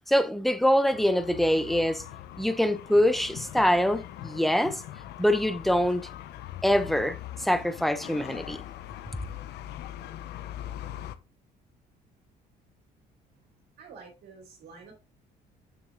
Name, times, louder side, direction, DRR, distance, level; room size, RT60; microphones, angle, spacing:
voice 1, 0.1-2.0 2.4-4.8 5.2-6.1 6.6-8.6, equal, ahead, 0.8 m, -24 dB
sound 1, 0.9-11.1, left 12 dB, 75° left, 0.8 m, -41 dB
voice 2, 13.8-14.9, right 5 dB, 70° right, 3.0 m, -48 dB
7.1 x 6.4 x 3.8 m
cardioid pair, 110°, 17 cm